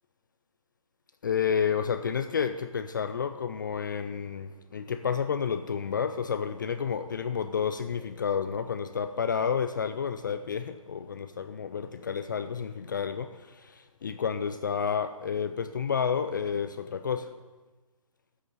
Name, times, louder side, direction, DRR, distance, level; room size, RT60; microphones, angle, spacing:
voice 1, 1.2-17.3, left 7 dB, 35° left, 0.4 m, -30 dB
8.1 x 7.7 x 7.9 m
figure-of-eight pair, 150°, 18 cm